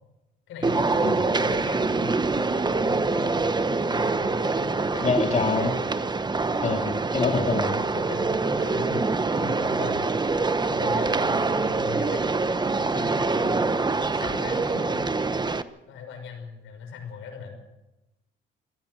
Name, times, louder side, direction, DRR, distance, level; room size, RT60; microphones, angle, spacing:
voice 1, 0.5-5.1 7.6-12.2 12.8-13.6 14.1-15.1 15.9-17.6, left 6 dB, 85° left, 6 dB, 6.0 m, -39 dB
sound 1, 0.6-15.6, right 3 dB, 20° right, 1.1 m, -25 dB
voice 2, 5.0-5.8 6.6-7.8, left 4 dB, 35° left, 3 dB, 2.7 m, -25 dB
24.0 x 18.0 x 6.6 m, 0.99 s
cardioid pair, 90°, 20 cm